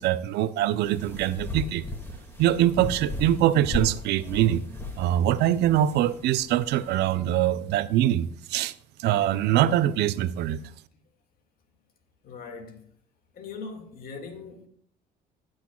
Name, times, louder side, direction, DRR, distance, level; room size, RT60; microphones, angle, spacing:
voice 1, 0.0-1.8 2.4-4.6 5.0-8.7 9.0-10.6, right 12 dB, 80° right, 0.6 m, -23 dB
sound 1, 0.7-7.1, left 1 dB, 15° left, 2.0 m, -36 dB
voice 2, 12.2-12.8 13.3-14.7, left 4 dB, 60° left, 2.0 m, -40 dB
16.0 x 7.9 x 2.3 m
cardioid pair, 110°, 17 cm